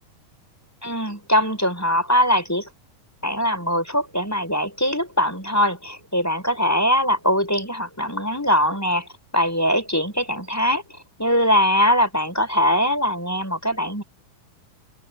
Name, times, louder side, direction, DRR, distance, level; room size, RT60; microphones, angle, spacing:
voice 1, 0.8-2.7 3.2-10.8 11.2-14.0, equal, 5° left, 5.1 m, -21 dB
open air
omnidirectional pair, 4.1 m